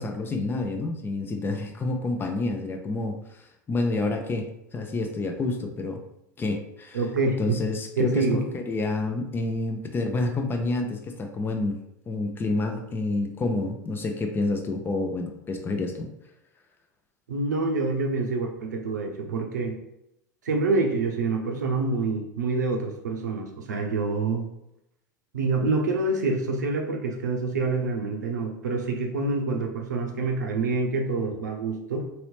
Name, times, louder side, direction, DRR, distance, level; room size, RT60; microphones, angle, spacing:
voice 1, 0.0-3.2 3.7-4.5 4.7-6.0 6.4-7.0 7.4-11.8 12.1-16.1, left 2 dB, 20° left, 4 dB, 0.6 m, -28 dB
voice 2, 6.9-7.6 8.0-8.4 17.3-19.8 20.4-24.5 25.3-32.1, right 3 dB, 75° right, 2 dB, 0.6 m, -26 dB
2.9 x 2.9 x 3.2 m, 0.83 s
figure-of-eight pair, 80°, 10 cm